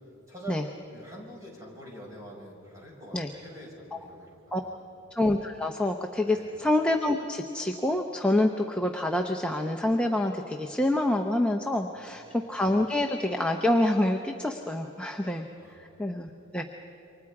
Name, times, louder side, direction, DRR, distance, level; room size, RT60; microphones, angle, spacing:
voice 1, 0.3-4.8 6.2-6.5 11.8-12.4 15.5-15.7, right 1 dB, 15° right, -3 dB, 5.7 m, -46 dB
voice 2, 5.1-16.6, left 1 dB, 5° left, 3 dB, 0.7 m, -27 dB
28.5 x 24.5 x 4.8 m, 3.0 s
head